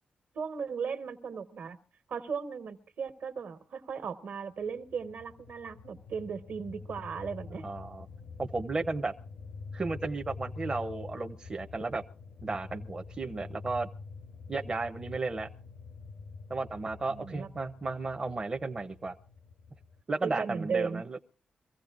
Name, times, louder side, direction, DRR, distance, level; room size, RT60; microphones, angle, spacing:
voice 1, 0.3-1.8 2.1-7.6 17.1-17.5 20.2-21.0, right 6 dB, 70° right, 8 dB, 1.3 m, -36 dB
sound 1, 4.6-20.0, left 4 dB, 80° left, 0.7 m, -46 dB
voice 2, 7.5-8.1 8.4-9.1 9.7-12.0 12.4-13.9 14.5-15.5 16.5-19.2 20.1-21.2, right 3 dB, 25° right, 5 dB, 0.6 m, -34 dB
25.0 x 15.5 x 2.4 m, 0.38 s
wide cardioid pair, 130°, 3 cm